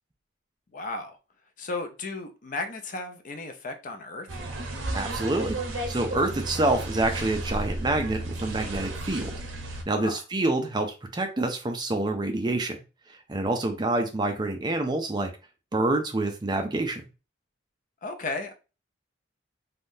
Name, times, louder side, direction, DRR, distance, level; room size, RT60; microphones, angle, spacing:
voice 1, 0.7-1.2 1.6-4.3 9.9-10.2 18.0-18.5, left 3 dB, 40° left, 0.4 m, -34 dB
sound 1, 4.3-9.8, right 2 dB, 80° right, 0.7 m, -33 dB
voice 2, 4.9-5.6 5.9-9.3 9.9-12.8 13.3-15.3 15.7-17.0, right 2 dB, 20° right, 0.4 m, -27 dB
3.5 x 2.3 x 2.6 m
head